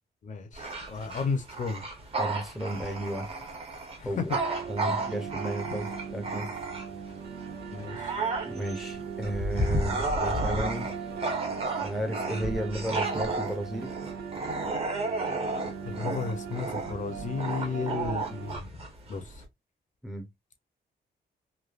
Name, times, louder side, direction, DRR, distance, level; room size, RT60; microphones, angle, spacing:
voice 1, 0.2-1.8 4.0-4.4 7.7-8.1 15.9-18.8 19.1-19.4, left 5 dB, 45° left, 0.5 m, -33 dB
Bark / Growling, 0.5-7.1 7.6-19.4, right 2 dB, 35° right, 0.9 m, -32 dB
voice 2, 2.2-3.3 4.0-4.3 4.7-6.5 8.4-10.9 11.8-13.9 20.0-20.3, right 1 dB, ahead, 0.5 m, -33 dB
sound 1, 4.3-18.6, right 6 dB, 65° right, 0.8 m, -39 dB
3.2 x 2.2 x 2.3 m
wide cardioid pair, 155°, 17 cm